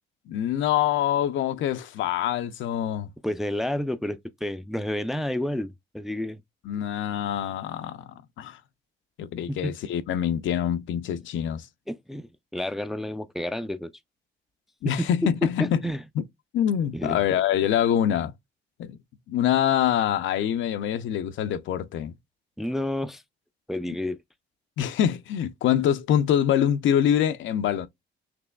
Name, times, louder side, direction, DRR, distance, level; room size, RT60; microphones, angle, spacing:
voice 1, 0.3-3.1 6.6-8.0 8.4-8.6 9.2-11.7 14.8-15.8 16.2-16.3 16.5-18.3 18.8-19.0 19.3-22.1 24.8-27.9, left 10 dB, 75° left, 0.5 m, -25 dB
voice 2, 3.2-6.4 9.5-9.7 11.9-13.9 14.8-15.3 15.6-16.0 16.9-17.2 22.6-23.2 23.7-24.2, left 1 dB, ahead, 0.4 m, -30 dB
5.9 x 3.0 x 2.2 m
cardioid pair, 90°, 20 cm